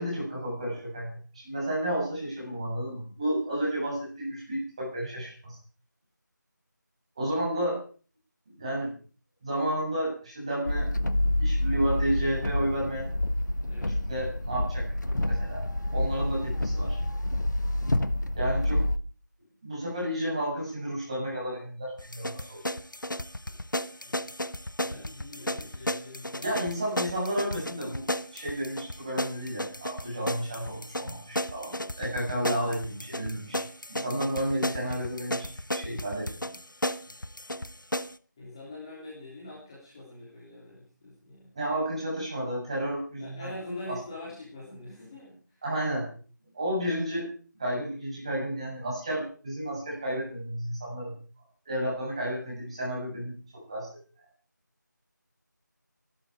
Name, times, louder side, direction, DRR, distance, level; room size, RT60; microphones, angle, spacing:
voice 1, 0.0-5.6 7.2-7.8 8.5-8.9 9.4-10.9 11.4-13.1 14.1-14.9 15.3-15.6 15.9-17.0 18.3-18.8 19.6-22.6 26.4-28.1 28.3-33.6 33.9-36.5 41.5-43.5 43.9-44.0 45.6-46.1 46.5-47.3 47.6-51.1 51.7-53.9, right 1 dB, 20° right, -4 dB, 7.7 m, -32 dB
sound 1, 10.7-19.0, left 1 dB, 70° left, 1.5 m, -28 dB
voice 2, 13.7-14.0 22.3-22.5 23.4-23.6 23.9-24.4 24.8-26.6 37.0-37.2 38.4-41.5 43.2-45.6, left 2 dB, 15° left, -6 dB, 3.3 m, -44 dB
sound 2, 22.0-38.1, left 1 dB, 90° left, 1.2 m, -34 dB
23.0 x 12.5 x 4.9 m, 0.41 s
figure-of-eight pair, 170°, 10 cm